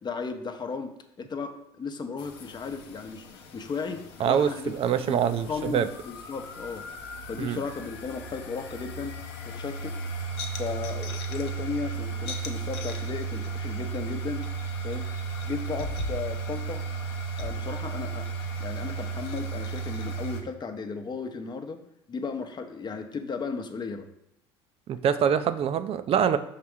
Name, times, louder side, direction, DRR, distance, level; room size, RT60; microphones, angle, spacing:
voice 1, 0.0-4.8 5.0-6.8 7.3-9.2 9.5-10.0 10.5-14.5 14.8-15.1 15.4-16.8 17.4-18.3 18.6-21.8 22.1-24.1, left 5 dB, 30° left, 7 dB, 0.8 m, -35 dB
sound 1, 2.2-20.4, right 4 dB, 75° left, 0.7 m, -35 dB
voice 2, 4.2-5.9 7.4-7.6 24.9-26.4, right 8 dB, 45° right, 10 dB, 0.5 m, -25 dB
5.7 x 3.5 x 4.9 m, 0.81 s
hypercardioid pair, 65°, 14 cm